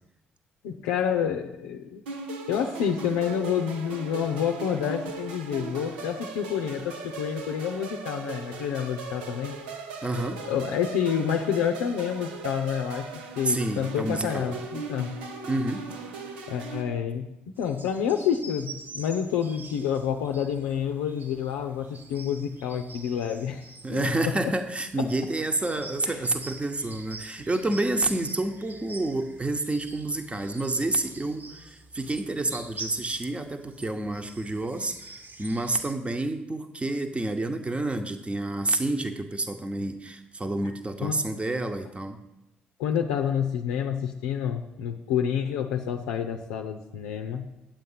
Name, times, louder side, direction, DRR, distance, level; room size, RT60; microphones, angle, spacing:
voice 1, 0.6-2.0 2.5-9.6 10.4-13.1 13.4-15.1 16.5-17.2 17.6-23.6 23.9-24.1 25.0-25.1 26.1-26.2 40.6-40.7 41.0-41.2 42.8-47.5, left 8 dB, 80° left, 3 dB, 0.5 m, -28 dB
sound 1, 2.1-16.8, right 4 dB, 90° right, 0.8 m, -39 dB
voice 2, 10.0-10.4 13.4-14.5 15.5-15.8 23.8-42.2, right 2 dB, 25° right, 6 dB, 1.1 m, -29 dB
sound 2, 17.6-35.9, right 2 dB, 40° right, 1.2 m, -46 dB
8.9 x 7.7 x 5.6 m, 0.94 s
hypercardioid pair, 45°, 5 cm